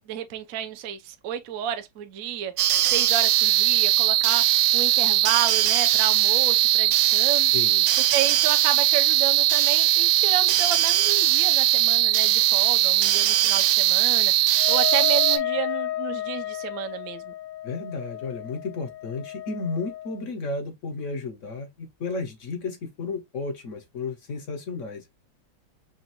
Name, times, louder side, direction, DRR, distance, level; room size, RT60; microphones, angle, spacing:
voice 1, 0.1-2.5 2.9-7.6 8.1-17.3, right 10 dB, 70° right, 0.8 m, -31 dB
sound 1, 2.6-15.4, right 14 dB, 85° right, 1.5 m, -20 dB
voice 2, 7.5-7.8 17.6-25.1, left 3 dB, 60° left, 0.8 m, -33 dB
Wind instrument woodwind instrument, 14.6-20.2, left 12 dB, 75° left, 1.4 m, -32 dB
6.1 x 2.3 x 2.9 m
omnidirectional pair, 2.2 m